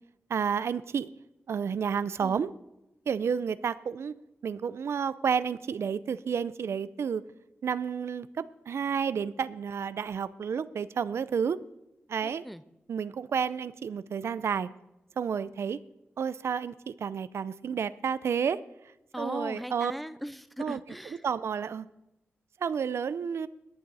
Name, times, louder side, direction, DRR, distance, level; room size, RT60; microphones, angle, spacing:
voice 1, 0.3-1.1 1.5-2.5 3.1-4.1 4.4-7.2 7.6-11.6 12.1-12.5 12.9-14.7 15.2-15.8 16.2-18.6 19.2-19.9 20.6-20.8 21.2-21.9 22.6-23.5, right 7 dB, 75° right, 16 dB, 0.5 m, -30 dB
voice 2, 12.2-12.6 19.1-21.2, equal, ahead, 14 dB, 0.4 m, -38 dB
18.0 x 10.5 x 4.1 m, 0.90 s
wide cardioid pair, 155°, 5 cm